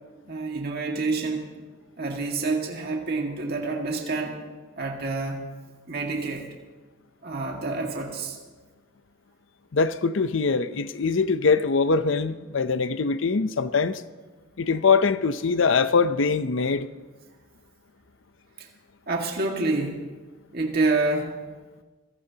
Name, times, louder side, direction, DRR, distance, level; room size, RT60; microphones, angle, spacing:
voice 1, 0.3-1.5 2.0-4.4 4.8-5.5 5.9-6.5 7.2-8.4 18.6-18.7 19.1-20.0 20.5-21.4, right 3 dB, 50° right, 1.9 m, -27 dB
voice 2, 9.7-14.0 14.6-16.9, left 4 dB, 65° left, 0.6 m, -23 dB
25.0 x 17.0 x 2.9 m
head